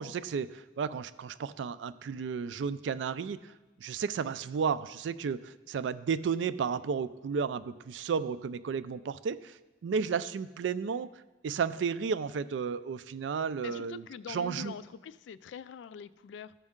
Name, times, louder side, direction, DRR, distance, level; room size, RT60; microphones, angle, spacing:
voice 1, 0.0-3.4 3.8-9.5 9.8-11.1 11.4-14.0 14.3-14.7, right 6 dB, 85° right, 15 dB, 0.3 m, -33 dB
voice 2, 13.6-16.5, left 7 dB, 85° left, 16 dB, 0.3 m, -44 dB
13.5 x 5.2 x 3.7 m, 1.1 s
head